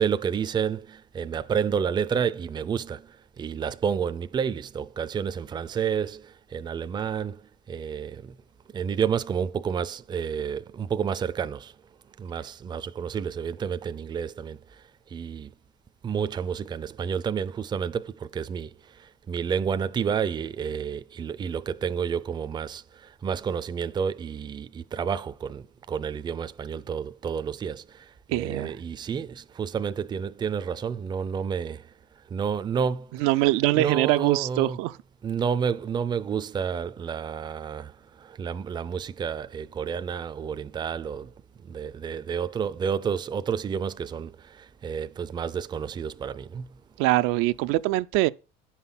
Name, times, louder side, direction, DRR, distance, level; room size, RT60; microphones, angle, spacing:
voice 1, 0.0-8.3 8.7-11.7 12.2-15.5 16.0-31.9 32.3-33.3 33.7-34.8 35.2-41.3 41.6-46.8, right 7 dB, 20° right, 0.4 m, -30 dB
voice 2, 28.3-28.7 33.2-34.9 47.0-48.3, right 18 dB, 80° right, 0.5 m, -23 dB
9.7 x 5.7 x 5.8 m
cardioid pair, 125°, 21 cm